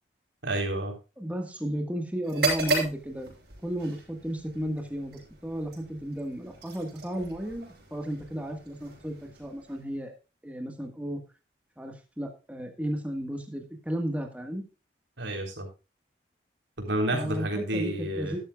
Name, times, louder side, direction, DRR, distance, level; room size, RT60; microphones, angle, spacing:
voice 1, 0.4-0.9 15.2-15.7 16.8-18.4, right 1 dB, 80° right, 3 dB, 3.8 m, -30 dB
voice 2, 1.2-3.3 3.6-10.1 10.4-11.2 11.8-14.6 17.1-18.4, equal, 10° right, 2 dB, 1.6 m, -34 dB
sound 1, 2.2-10.1, right 2 dB, 60° right, 6.5 m, -35 dB
13.0 x 12.0 x 2.4 m, 0.30 s
head